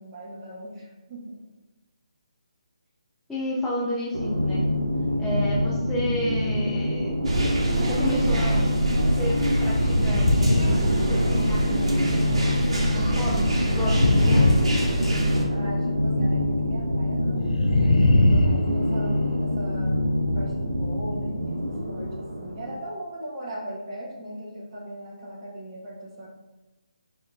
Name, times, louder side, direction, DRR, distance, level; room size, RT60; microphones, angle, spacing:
voice 1, 0.0-1.4 15.5-17.8 18.1-20.0 20.3-26.3, equal, 25° right, -5 dB, 0.8 m, -38 dB
voice 2, 3.3-4.8 5.2-7.2 7.7-12.3 12.9-14.6, left 1 dB, 5° left, -10 dB, 0.4 m, -32 dB
sound 1, 4.1-22.8, left 1 dB, 85° right, 0.5 m, -26 dB
sound 2, 7.2-15.4, right 1 dB, 55° right, 0.9 m, -26 dB
sound 3, 9.7-11.6 13.7-15.4 17.4-19.3, left 2 dB, 75° left, 0.4 m, -22 dB
6.1 x 2.2 x 2.6 m, 1.1 s
figure-of-eight pair, 150°, 3 cm